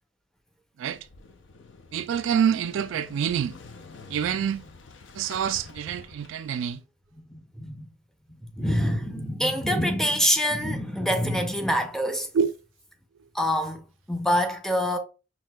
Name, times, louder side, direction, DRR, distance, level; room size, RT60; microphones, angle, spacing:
Motorcycle / Engine starting, 0.9-6.7, left 4 dB, 70° left, 0.5 m, -47 dB
voice 1, 1.9-3.5 4.1-4.6 5.1-6.8 12.3-12.5, right 8 dB, 75° right, 0.3 m, -26 dB
voice 2, 7.3-7.9 8.3-12.3 13.3-15.0, equal, 5° left, 0.5 m, -26 dB
5.9 x 2.7 x 2.2 m
head